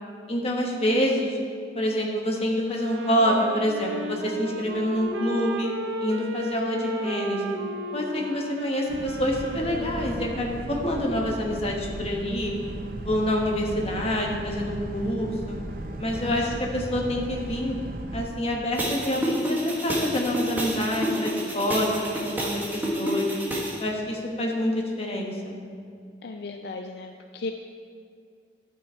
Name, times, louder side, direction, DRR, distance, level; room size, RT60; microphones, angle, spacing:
voice 1, 0.3-1.4 1.7-5.7 6.0-7.4 7.9-12.5 13.0-15.6 16.0-17.8 18.1-23.3 23.8-25.6, equal, 35° left, -1 dB, 1.3 m, -27 dB
Wind instrument woodwind instrument, 2.6-11.0, right 1 dB, 85° right, 0.7 m, -34 dB
Boat Water vehicle, 8.9-18.3, right 1 dB, 55° right, 0.7 m, -36 dB
sound 1, 18.8-23.8, equal, 10° right, 1.3 m, -29 dB
voice 2, 26.2-27.5, left 3 dB, 65° left, 5 dB, 0.4 m, -36 dB
11.0 x 6.1 x 4.4 m, 2.3 s
head